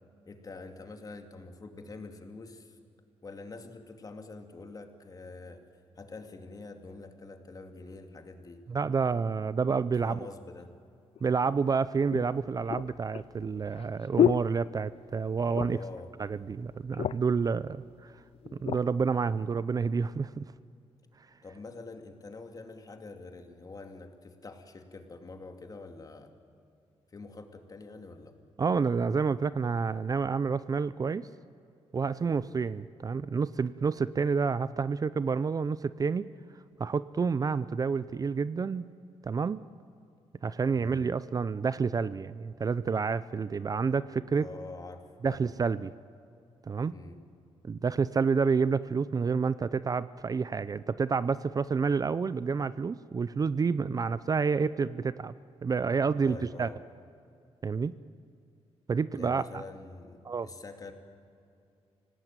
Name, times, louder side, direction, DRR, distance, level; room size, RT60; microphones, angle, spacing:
voice 1, 0.3-2.8 3.2-5.7 6.0-8.6 9.9-10.7 15.7-16.1 21.4-26.3 27.1-28.4 40.7-41.0 44.3-45.4 46.9-47.2 56.2-56.8 59.2-60.9, left 3 dB, 35° left, 6 dB, 2.4 m, -46 dB
voice 2, 8.7-10.2 11.2-15.8 16.2-18.1 18.6-20.4 28.6-31.3 31.9-36.3 36.8-38.9 39.2-39.6 40.4-44.5 45.2-45.9 46.7-46.9 47.6-55.3 55.6-56.7 57.6-57.9 58.9-59.4 60.2-60.5, right 5 dB, 35° right, 16 dB, 0.5 m, -29 dB
sound 1, 11.2-11.3 12.1-15.2 15.5-16.0 16.3-16.4 16.7-17.4 18.1-18.9 19.5-19.7, left 10 dB, 65° left, 0.5 m, -31 dB
25.5 x 18.0 x 9.1 m, 2.5 s
cardioid pair, 105°, 11 cm